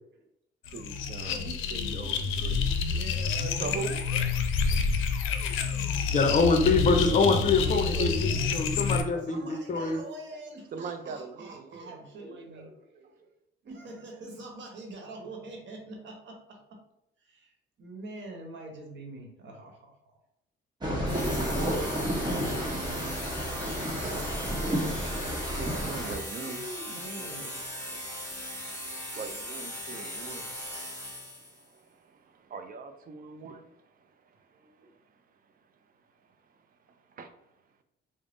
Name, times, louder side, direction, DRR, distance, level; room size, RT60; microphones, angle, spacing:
sound 1, 0.6-9.0, left 5 dB, 85° left, 0.4 m, -28 dB
voice 1, 0.7-4.0 7.5-8.5 10.7-12.0 25.1-26.6 27.9-34.7 36.9-37.3, right 5 dB, 45° right, 8 dB, 0.5 m, -42 dB
voice 2, 1.2-1.7 2.0-2.2 9.3-13.3 13.6-16.8 17.2-17.5 17.8-19.8 26.4-28.0 34.5-34.9, right 2 dB, 65° right, 2 dB, 1.0 m, -45 dB
voice 3, 6.1-10.0, left 4 dB, 40° left, 5 dB, 0.6 m, -25 dB
sound 2, 20.8-26.2, equal, 20° right, 1.0 m, -31 dB
sound 3, 21.1-31.6, equal, 10° left, 1.3 m, -39 dB
3.4 x 2.0 x 3.7 m, 0.81 s
cardioid pair, 90°, 20 cm